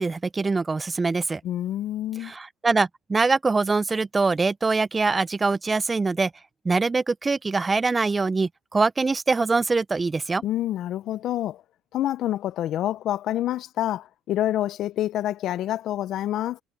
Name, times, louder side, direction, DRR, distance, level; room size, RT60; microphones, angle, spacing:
voice 1, 0.0-1.4 2.2-6.3 6.6-10.4, right 3 dB, 25° right, 0.9 m, -23 dB
voice 2, 1.4-2.3 10.4-11.6 11.9-16.6, left 13 dB, 60° left, 0.9 m, -27 dB
hypercardioid pair, 70°, 0 cm